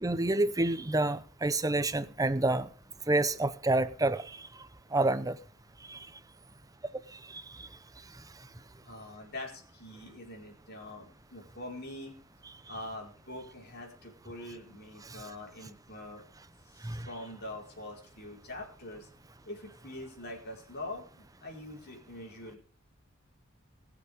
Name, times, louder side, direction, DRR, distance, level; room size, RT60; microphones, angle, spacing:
voice 1, 0.0-2.7 3.1-4.2 4.9-5.4 5.9-6.0 7.3-7.4 16.8-17.1, right 2 dB, 15° right, 0.8 m, -28 dB
voice 2, 8.8-12.1 12.7-16.3 16.6-19.1 19.4-22.6, left 1 dB, 55° left, 4.8 m, -44 dB
21.0 x 7.2 x 5.3 m
head